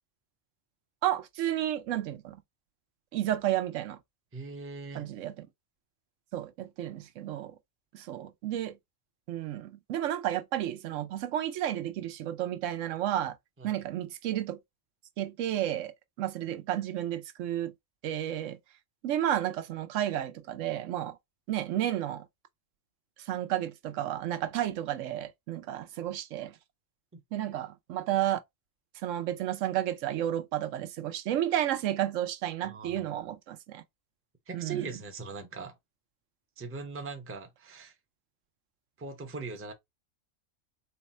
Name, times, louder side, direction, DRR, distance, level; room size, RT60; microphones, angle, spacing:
voice 1, 1.0-2.4 3.1-4.0 4.9-5.5 6.3-7.6 7.9-8.8 9.3-13.4 13.6-14.6 15.2-17.7 18.0-18.6 19.0-21.2 21.5-22.2 23.2-26.5 27.3-28.4 29.0-33.8 34.5-34.9, right 12 dB, 85° right, 1.0 m, -32 dB
voice 2, 4.3-5.1 13.6-13.8 27.1-27.2 32.6-33.0 34.5-35.8 36.6-37.9 39.0-39.7, right 4 dB, 15° right, 0.4 m, -40 dB
3.9 x 2.2 x 4.1 m
omnidirectional pair, 1.3 m